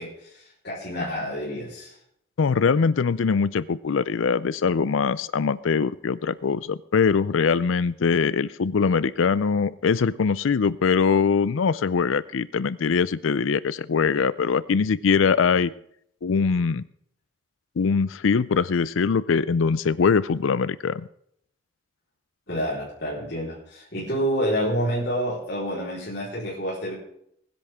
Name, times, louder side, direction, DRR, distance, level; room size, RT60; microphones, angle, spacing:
voice 1, 0.0-1.9 22.5-26.9, equal, 55° left, -7 dB, 4.2 m, -28 dB
voice 2, 2.4-15.7 16.2-16.8 17.8-21.1, left 5 dB, 80° left, 18 dB, 0.5 m, -22 dB
20.5 x 10.5 x 3.6 m, 0.70 s
head